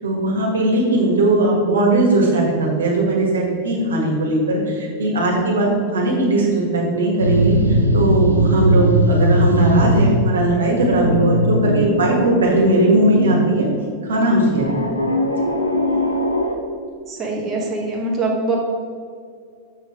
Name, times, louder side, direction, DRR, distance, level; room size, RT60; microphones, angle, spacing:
voice 1, 0.0-7.5 7.9-13.7 14.0-14.7, right 2 dB, 70° right, -1 dB, 1.7 m, -18 dB
sound 1, 7.2-10.3 10.6-13.7 14.5-16.5, equal, 90° left, 0.7 m, -19 dB
voice 2, 17.1-18.6, right 3 dB, 25° right, -2 dB, 1.3 m, -23 dB
6.8 x 6.0 x 4.8 m, 2.2 s
figure-of-eight pair, 90°, 0 cm